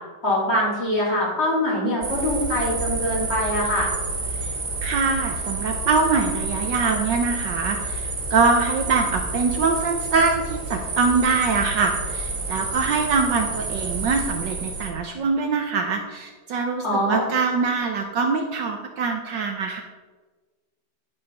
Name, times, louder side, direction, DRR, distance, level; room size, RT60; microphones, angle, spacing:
voice 1, 0.2-3.9 16.8-17.3, left 1 dB, 30° left, -6 dB, 3.3 m, -23 dB
sound 1, 2.0-14.9, right 3 dB, 45° right, 1.5 m, -29 dB
voice 2, 4.8-19.8, right 4 dB, 65° right, 4 dB, 1.3 m, -23 dB
11.5 x 5.2 x 5.5 m, 1.3 s
omnidirectional pair, 2.3 m